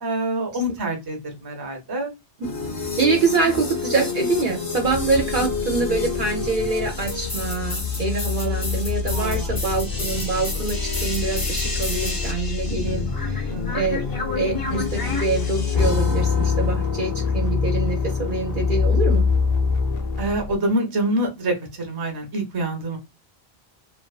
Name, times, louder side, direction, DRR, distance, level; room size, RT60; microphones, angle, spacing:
voice 1, 0.0-2.1 5.4-5.5 9.1-9.5 12.7-13.0 13.4-13.8 20.2-23.0, right 1 dB, 25° right, 3 dB, 0.6 m, -26 dB
sound 1, 2.4-20.4, left 4 dB, 30° left, 0.5 m, -27 dB
voice 2, 3.0-14.0 14.4-19.3, right 4 dB, 60° right, 2 dB, 0.7 m, -25 dB
sound 2, 4.8-20.6, left 6 dB, 70° left, 0.7 m, -30 dB
2.5 x 2.4 x 2.3 m, 0.24 s
omnidirectional pair, 1.0 m